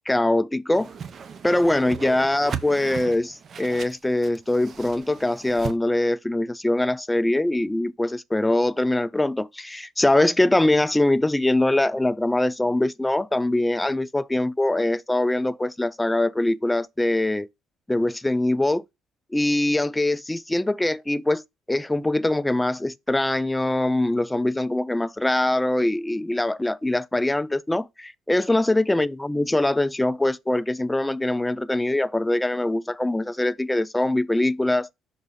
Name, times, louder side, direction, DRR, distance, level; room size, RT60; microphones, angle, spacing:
voice 1, 0.1-0.9 1.4-17.5 17.9-18.8 19.3-21.4 21.7-34.9, left 1 dB, 10° left, 0.3 m, -23 dB
Whoosh swoosh swish, 0.7-5.8, right 6 dB, 45° right, 0.6 m, -37 dB
6.0 x 3.9 x 4.0 m
cardioid pair, 110°, 0 cm